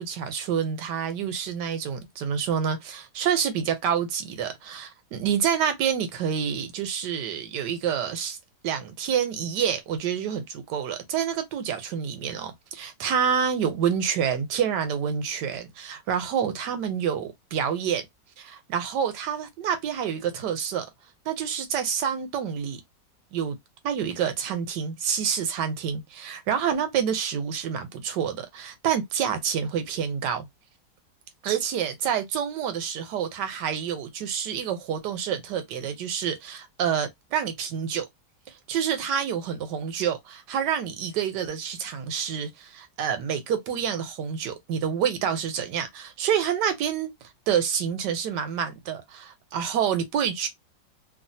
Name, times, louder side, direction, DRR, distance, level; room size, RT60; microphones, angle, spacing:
voice 1, 0.0-8.4 8.6-18.0 18.4-20.9 21.3-22.8 23.3-23.6 23.8-30.4 31.4-38.1 38.7-50.5, right 8 dB, 75° right, 1.3 m, -28 dB
3.0 x 2.4 x 2.7 m
omnidirectional pair, 1.9 m